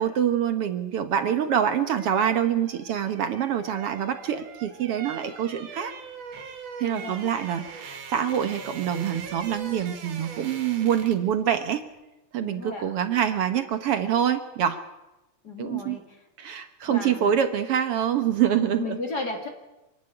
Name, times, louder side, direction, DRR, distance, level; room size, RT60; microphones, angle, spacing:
voice 1, 0.0-5.9 6.8-11.8 12.3-14.8 15.6-16.0 16.4-19.0, right 9 dB, 60° right, 9 dB, 1.7 m, -25 dB
sound 1, 1.4-11.4 11.6-11.8, right 6 dB, 90° right, 3.6 m, -42 dB
voice 2, 6.9-7.3 12.4-12.9 15.4-16.0 16.9-17.3 18.5-19.5, left 3 dB, 35° left, 3 dB, 2.6 m, -34 dB
25.5 x 12.0 x 9.8 m, 0.99 s
omnidirectional pair, 3.5 m